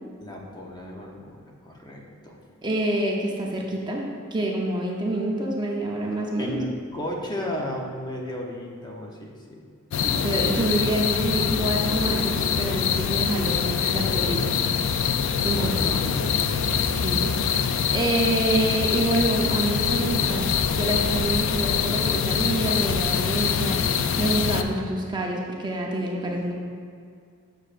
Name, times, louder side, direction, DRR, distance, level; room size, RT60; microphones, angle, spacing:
voice 1, 0.2-2.4 6.4-9.6 10.5-10.6 15.5-16.8, left 1 dB, 20° left, -1 dB, 0.7 m, -34 dB
voice 2, 2.6-6.6 10.0-14.4 15.4-15.7 17.0-20.5 20.8-26.5, right 1 dB, 20° right, -1 dB, 0.7 m, -27 dB
sound 1, 9.9-24.6, left 6 dB, 65° left, 0.4 m, -24 dB
8.3 x 6.3 x 2.5 m, 2.3 s
head